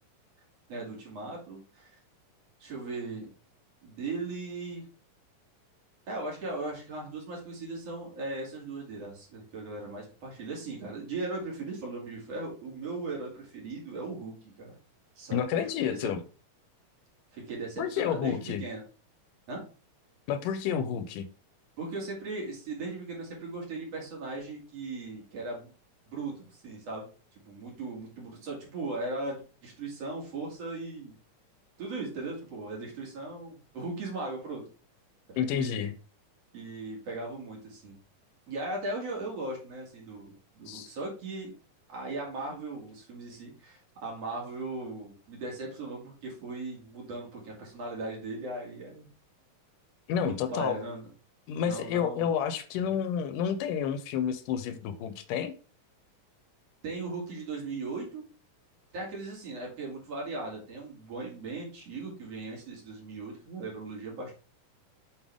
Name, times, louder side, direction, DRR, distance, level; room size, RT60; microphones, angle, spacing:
voice 1, 0.7-1.9 2.6-3.3 3.8-4.8 6.1-14.8 15.2-16.1 17.3-18.8 19.5-19.6 21.8-25.7 26.1-27.1 27.4-31.1 31.8-34.6 35.3-35.8 36.5-37.9 38.5-41.5 41.9-49.1 50.2-51.1 51.6-52.3 56.8-58.2 58.9-64.4, right 3 dB, 50° right, 3.2 m, -38 dB
voice 2, 15.3-16.2 17.8-18.6 20.3-21.3 35.4-36.0 40.7-40.9 50.1-50.8 51.5-55.5, left 8 dB, 80° left, 2.2 m, -30 dB
7.3 x 5.6 x 3.5 m
omnidirectional pair, 3.9 m